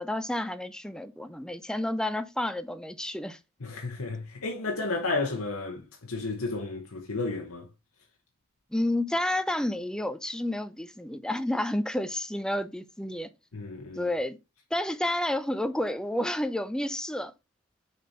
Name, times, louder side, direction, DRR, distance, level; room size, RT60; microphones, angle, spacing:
voice 1, 0.0-3.4 8.7-13.3 14.0-14.4 14.7-17.3, left 1 dB, 5° left, 0.5 m, -30 dB
voice 2, 3.6-7.7 13.5-14.1, left 3 dB, 75° left, 1.1 m, -32 dB
6.8 x 4.3 x 4.2 m
head